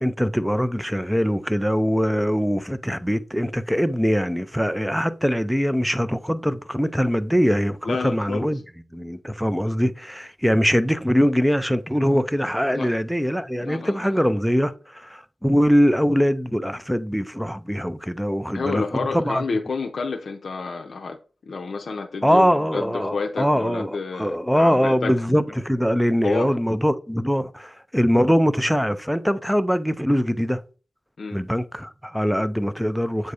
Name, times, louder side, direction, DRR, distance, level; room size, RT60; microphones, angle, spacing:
voice 1, 0.0-8.6 8.9-18.8 19.1-19.4 22.2-30.6 31.3-33.3, equal, ahead, 0.4 m, -22 dB
voice 2, 7.8-8.5 12.7-12.9 13.6-14.2 18.5-21.2 21.5-25.1 26.2-26.5 31.2-31.4, left 4 dB, 70° left, 0.6 m, -29 dB
7.7 x 2.7 x 4.8 m
wide cardioid pair, 135°, 0 cm